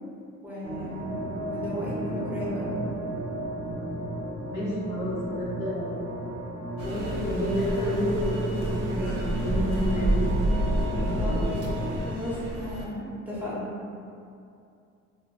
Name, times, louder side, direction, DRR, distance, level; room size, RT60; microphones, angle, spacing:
voice 1, 0.4-2.7 11.2-11.3 12.0-13.7, left 1 dB, 5° right, -8 dB, 0.9 m, -35 dB
sound 1, 0.6-12.0, right 1 dB, 45° right, 0.6 m, -33 dB
voice 2, 4.5-6.1 6.8-8.6 8.9-10.5 10.8-11.5, equal, 65° left, -7 dB, 0.9 m, -30 dB
sound 2, 6.8-12.9, right 1 dB, 85° right, 0.5 m, -29 dB
2.2 x 2.1 x 3.7 m, 2.5 s
cardioid pair, 90°, 30 cm